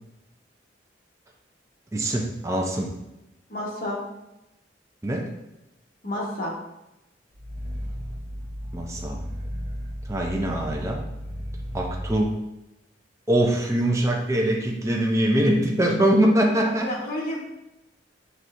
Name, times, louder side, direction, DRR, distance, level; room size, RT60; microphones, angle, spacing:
voice 1, 1.9-2.9 5.0-5.3 8.7-9.2 10.1-11.0 11.7-12.4 13.3-16.9, right 1 dB, 15° right, 0 dB, 0.4 m, -23 dB
voice 2, 3.5-4.0 6.0-6.5 16.8-17.4, left 1 dB, 50° left, -5 dB, 1.3 m, -30 dB
Growling, 7.3-12.3, equal, 45° right, 0.8 m, -34 dB
6.2 x 3.2 x 2.6 m, 0.93 s
head